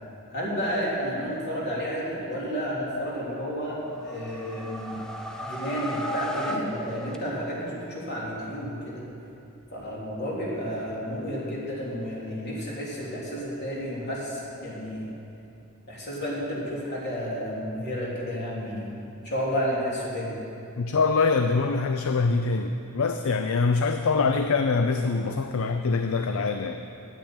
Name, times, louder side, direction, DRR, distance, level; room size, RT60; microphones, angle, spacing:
voice 1, 0.3-5.0 5.4-9.0 9.7-15.1 15.9-18.9 19.2-20.3, equal, 50° left, -6 dB, 3.3 m, -31 dB
sound 1, 3.9-7.7, equal, 5° left, 0.7 m, -35 dB
voice 2, 20.8-26.8, left 4 dB, 65° left, 7 dB, 0.5 m, -24 dB
9.3 x 8.4 x 8.8 m, 2.7 s
head